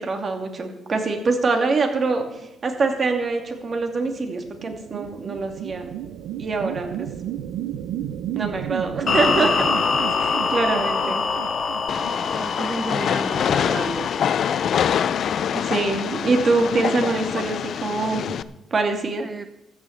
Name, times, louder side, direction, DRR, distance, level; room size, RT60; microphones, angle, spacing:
voice 1, 0.0-2.2 2.6-5.9 6.4-7.1 8.3-9.5 10.2-11.2 15.5-18.2 18.7-19.3, right 3 dB, 40° right, 4 dB, 2.6 m, -24 dB
sound 1, 3.1-12.9, right 11 dB, 90° right, 0.6 m, -33 dB
sound 2, 9.1-16.2, left 5 dB, 45° left, 1.8 m, -26 dB
Train, 11.9-18.4, left 8 dB, 65° left, 0.5 m, -25 dB
voice 2, 12.3-14.1 19.2-19.5, right 3 dB, 25° right, 11 dB, 0.6 m, -32 dB
14.0 x 7.1 x 8.2 m, 0.93 s
cardioid pair, 90°, 0 cm